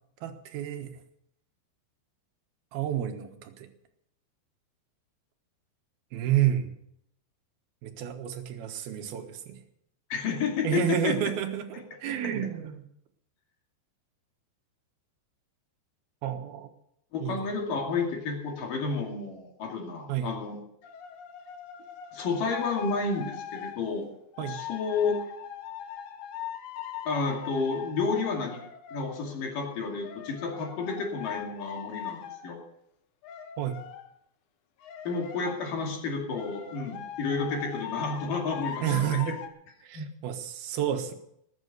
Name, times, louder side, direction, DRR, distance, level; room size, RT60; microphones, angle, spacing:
voice 1, 0.2-1.0 2.7-3.7 6.1-6.7 7.8-9.6 10.6-12.8 16.2-16.7 17.2-17.4 20.1-20.4 24.4-24.6 33.6-33.8 38.8-39.4 39.8-41.1, right 10 dB, 70° right, 7 dB, 3.0 m, -30 dB
voice 2, 10.1-11.2 17.1-20.6 22.1-24.1 24.5-25.2 27.1-28.6 28.9-32.6 35.1-39.2 39.9-40.1, left 4 dB, 55° left, 1 dB, 3.8 m, -31 dB
sound 1, 20.8-23.8 24.3-29.3 30.0-32.5 33.2-34.1 34.8-35.6 36.3-39.5, left 9 dB, 70° left, 1.9 m, -41 dB
20.0 x 8.9 x 6.8 m, 0.74 s
omnidirectional pair, 5.0 m